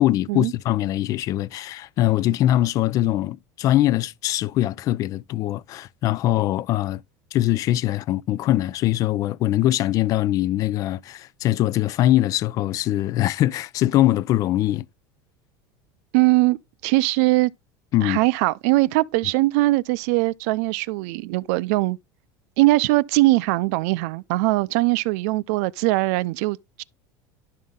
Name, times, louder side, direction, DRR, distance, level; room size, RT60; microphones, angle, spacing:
voice 1, 0.0-7.0 7.3-14.9 17.9-18.2, left 14 dB, 45° left, 0.4 m, -22 dB
voice 2, 16.1-17.5 18.0-22.0 22.6-26.8, right 20 dB, 75° right, 0.5 m, -21 dB
11.5 x 5.6 x 3.6 m
cardioid pair, 140°, 8 cm